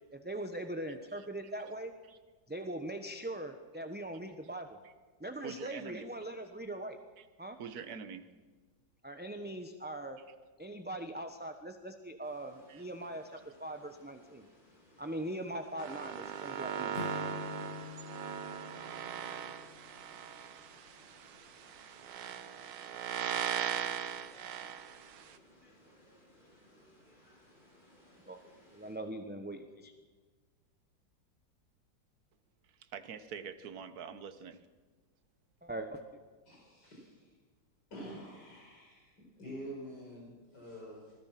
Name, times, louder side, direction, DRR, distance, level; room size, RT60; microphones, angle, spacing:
voice 1, 0.1-1.9 2.5-4.8 5.2-7.0 7.4-7.6 9.0-10.2 10.6-14.4 15.0-17.0 28.3-28.4 28.7-29.9 35.6-36.0, right 1 dB, 5° right, 6 dB, 0.8 m, -41 dB
voice 2, 5.4-6.1 7.2-7.3 7.6-8.3 12.7-12.8 32.8-34.6, right 6 dB, 60° right, 10 dB, 1.6 m, -45 dB
sound 1, 12.2-29.0, left 1 dB, 25° left, 5.4 m, -63 dB
sound 2, 15.8-25.4, right 9 dB, 90° right, 1.8 m, -39 dB
Acoustic guitar / Strum, 16.9-20.4, left 8 dB, 45° left, 1.5 m, -46 dB
voice 3, 36.5-37.3 37.9-41.1, equal, 65° left, -3 dB, 5.7 m, -47 dB
26.5 x 20.5 x 5.9 m, 1.4 s
omnidirectional pair, 1.9 m